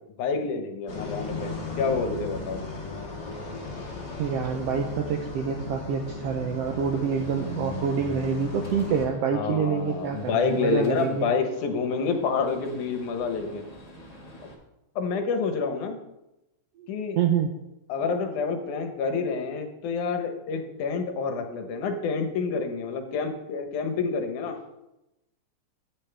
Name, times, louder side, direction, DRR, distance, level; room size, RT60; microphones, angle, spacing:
voice 1, 0.2-2.6 9.3-13.6 15.0-16.0 16.9-17.2 17.9-24.6, left 5 dB, 75° left, 5 dB, 2.5 m, -28 dB
sound 1, 0.9-9.1, left 3 dB, 40° left, 2.3 m, -36 dB
voice 2, 4.2-11.3 16.8-16.9 17.2-17.5, right 7 dB, 75° right, 4 dB, 1.5 m, -27 dB
Gunshot gunfire, 6.6-14.5, equal, 20° left, 1.1 m, -46 dB
13.0 x 9.2 x 3.4 m, 0.93 s
omnidirectional pair, 3.6 m